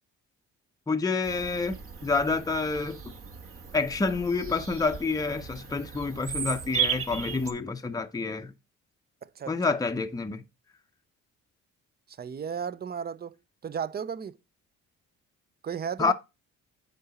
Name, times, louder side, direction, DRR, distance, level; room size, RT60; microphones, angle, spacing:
voice 1, 0.9-1.8 2.0-3.0 3.7-8.5 9.5-10.4 16.0-16.1, left 4 dB, 10° left, 0.6 m, -28 dB
Bird vocalization bird call bird song, 1.2-7.5, right 7 dB, 50° right, 1.3 m, -35 dB
voice 2, 9.2-9.5 12.2-13.4 13.6-14.4 15.6-16.1, right 7 dB, 30° right, 0.5 m, -34 dB
9.3 x 3.9 x 4.2 m
cardioid pair, 90°, 30 cm